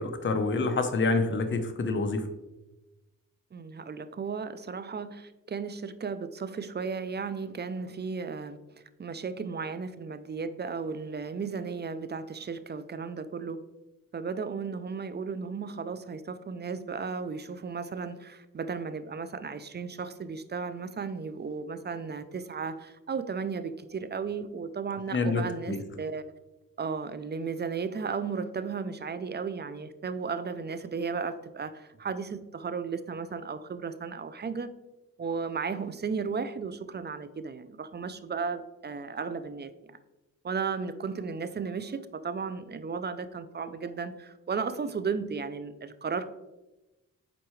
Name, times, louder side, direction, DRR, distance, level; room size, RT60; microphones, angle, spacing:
voice 1, 0.0-2.3 25.1-25.8, left 3 dB, 35° left, 7 dB, 0.8 m, -27 dB
voice 2, 3.5-8.6 9.0-13.6 14.1-26.2 26.8-34.7 35.2-39.9 40.4-46.3, right 5 dB, 30° right, 12 dB, 0.5 m, -35 dB
7.7 x 4.5 x 3.1 m, 1.0 s
cardioid pair, 80°, 34 cm